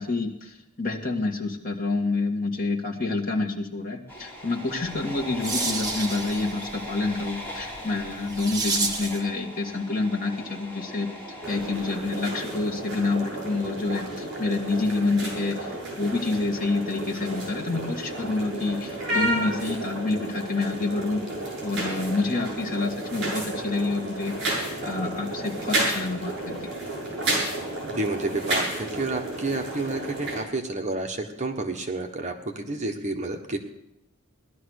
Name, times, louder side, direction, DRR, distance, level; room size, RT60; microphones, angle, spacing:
voice 1, 0.0-11.1 11.5-21.2 21.6-26.7, left 3 dB, 40° left, 1 dB, 2.1 m, -28 dB
sound 1, 4.1-12.0, equal, 10° left, 4.6 m, -39 dB
sound 2, 4.9-9.3, right 3 dB, 20° right, 1.8 m, -32 dB
sound 3, 11.4-30.4, right 1 dB, 55° right, 7.4 m, -31 dB
voice 2, 27.8-33.6, right 2 dB, 35° right, 3 dB, 1.3 m, -30 dB
18.0 x 12.0 x 6.5 m, 0.80 s
head